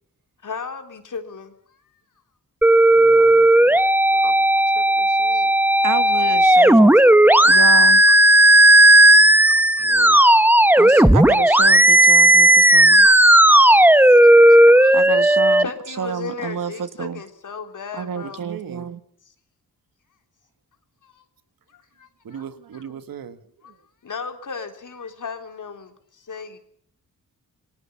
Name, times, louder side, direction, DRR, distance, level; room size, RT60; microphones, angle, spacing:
voice 1, 0.4-1.5 4.1-5.5 6.1-6.4 7.6-7.8 8.1-8.2 9.5-9.9 10.6-11.1 13.0-13.8 14.1-15.0 15.6-18.6 19.2-19.3 21.0-21.2 21.7-22.4 22.7-22.9 23.6-23.7 24.0-26.6, left 5 dB, 60° left, 3.6 m, -37 dB
sound 1, 2.6-15.6, right 1 dB, 5° right, 1.0 m, -13 dB
voice 2, 2.9-3.5 9.8-10.2 18.4-18.8 22.2-23.4, right 8 dB, 80° right, 1.7 m, -37 dB
voice 3, 5.8-7.0 7.4-8.0 10.8-13.1 14.9-15.7 16.0-17.2 17.9-19.0, right 7 dB, 65° right, 1.5 m, -29 dB
27.5 x 19.5 x 7.1 m
cardioid pair, 90°, 34 cm